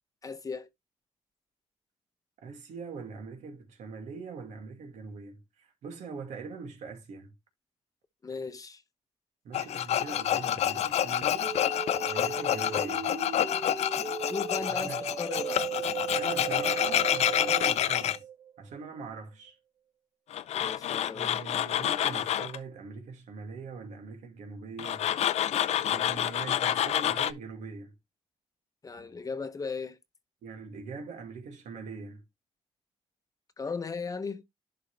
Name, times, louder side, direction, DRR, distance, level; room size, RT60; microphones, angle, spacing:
voice 1, 0.2-0.7 8.2-8.8 14.2-14.9 15.2-15.7 20.5-21.3 28.8-30.0 33.6-34.4, left 4 dB, 30° left, 0.9 m, -36 dB
voice 2, 2.4-7.3 9.4-11.6 12.1-13.1 14.7-15.0 16.2-18.2 18.6-19.6 21.1-25.1 25.9-27.9 30.4-32.2, right 5 dB, 80° right, 2.2 m, -42 dB
Tools, 9.5-18.2 20.3-22.6 24.8-27.3, left 11 dB, 65° left, 0.5 m, -28 dB
sound 1, 11.4-18.5 18.8-18.9, right 7 dB, 45° right, 1.9 m, -37 dB
11.0 x 3.9 x 3.2 m
cardioid pair, 110°, 12 cm